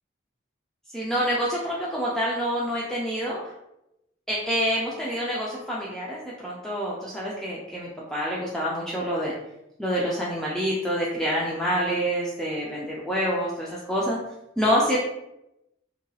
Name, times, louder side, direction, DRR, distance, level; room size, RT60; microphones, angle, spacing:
voice 1, 0.9-3.4 4.3-9.3 9.8-14.2 14.6-15.0, equal, 5° left, -6 dB, 0.3 m, -27 dB
2.8 x 2.7 x 2.2 m, 0.89 s
head